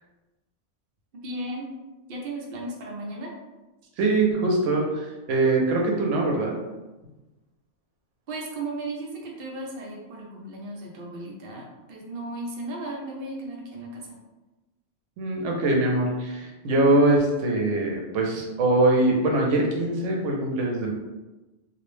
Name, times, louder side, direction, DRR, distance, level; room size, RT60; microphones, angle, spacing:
voice 1, 1.2-1.7 2.1-3.3 8.3-14.2, right 2 dB, 55° right, -2 dB, 0.7 m, -35 dB
voice 2, 4.0-6.6 15.2-20.9, right 2 dB, 75° right, -1 dB, 0.9 m, -23 dB
2.5 x 2.0 x 3.1 m, 1.1 s
omnidirectional pair, 1.3 m